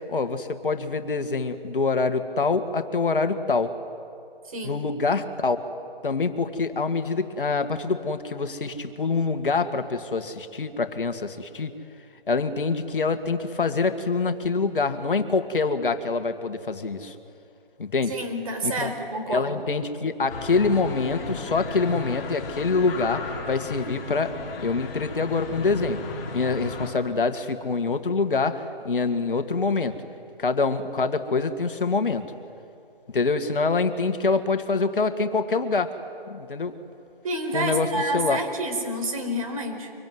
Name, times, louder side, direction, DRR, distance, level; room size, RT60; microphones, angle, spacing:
voice 1, 0.1-3.7 4.6-5.6 6.0-11.7 12.3-17.2 17.8-18.2 18.6-18.9 19.3-24.3 24.6-26.0 26.3-30.0 30.4-32.3 33.1-35.9 36.3-36.8 37.5-38.4, left 4 dB, 65° left, 8 dB, 1.9 m, -25 dB
voice 2, 4.5-4.8 18.1-19.5 37.2-39.9, right 1 dB, 35° right, 4 dB, 4.6 m, -29 dB
sound 1, 20.3-26.9, left 3 dB, 20° left, 3.3 m, -35 dB
25.0 x 24.5 x 9.5 m, 2.6 s
hypercardioid pair, 165°, 29 cm